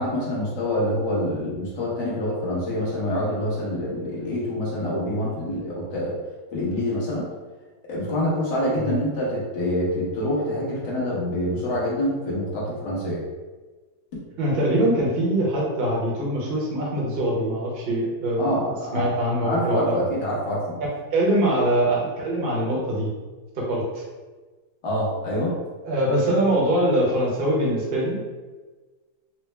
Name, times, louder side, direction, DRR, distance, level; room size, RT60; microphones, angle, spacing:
voice 1, 0.0-6.2 6.5-7.3 7.9-13.2 18.4-19.1 19.4-20.6 24.8-25.5, left 1 dB, 60° left, -6 dB, 1.6 m, -26 dB
voice 2, 14.4-20.0 21.1-23.1 23.5-24.0 25.8-28.2, right 1 dB, 45° right, -4 dB, 0.8 m, -23 dB
4.3 x 2.0 x 3.2 m, 1.3 s
omnidirectional pair, 2.1 m